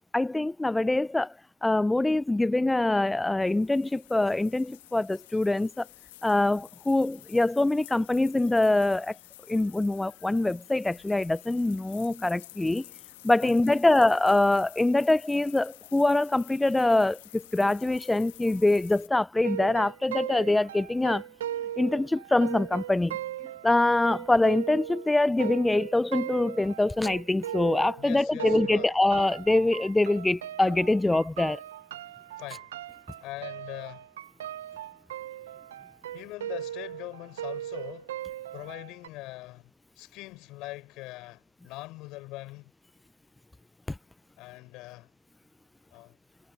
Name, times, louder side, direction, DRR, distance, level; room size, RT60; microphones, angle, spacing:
voice 1, 0.1-1.3 1.6-5.9 6.2-9.1 9.5-12.8 13.2-21.2 21.8-23.2 23.6-31.6, left 2 dB, 5° left, 0.4 m, -24 dB
sound 1, 3.4-19.1, left 17 dB, 55° left, 1.9 m, -51 dB
voice 2, 13.4-13.8 28.0-28.9 32.4-32.7 33.2-34.1 36.1-38.1 38.5-39.7 40.0-42.7 44.4-45.1 45.9-46.2, left 20 dB, 35° left, 5.5 m, -42 dB
sound 2, 19.4-28.1 28.4-39.1, right 11 dB, 65° right, 0.7 m, -38 dB
hypercardioid pair, 135°, 0 cm